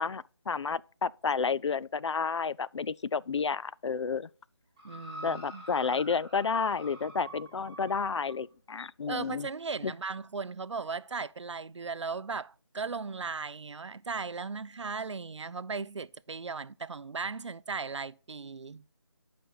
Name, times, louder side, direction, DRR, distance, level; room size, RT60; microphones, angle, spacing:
voice 1, 0.0-4.3 5.2-9.5 9.8-9.9, left 5 dB, 85° left, 0.4 m, -31 dB
sound 1, 4.8-8.4 9.2-9.3, right 1 dB, 15° right, 1.6 m, -46 dB
voice 2, 4.8-5.6 9.1-18.8, right 4 dB, 85° right, 0.5 m, -37 dB
6.8 x 5.2 x 5.7 m
figure-of-eight pair, 175°, 15 cm